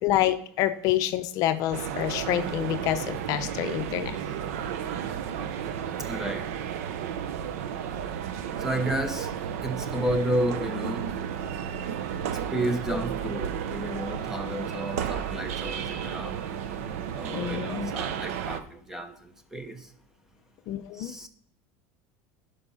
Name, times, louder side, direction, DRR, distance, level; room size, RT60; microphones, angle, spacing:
voice 1, 0.0-4.2 17.3-17.9 20.7-21.1, left 13 dB, 50° left, 0.6 m, -27 dB
sound 1, 1.7-18.6, right 8 dB, 85° right, 0.8 m, -33 dB
voice 2, 6.1-6.5 8.6-9.3 9.6-11.1 12.5-16.6 17.2-19.9 21.0-21.3, right 1 dB, 5° right, 0.8 m, -31 dB
11.0 x 5.3 x 5.5 m
cardioid pair, 150°, 8 cm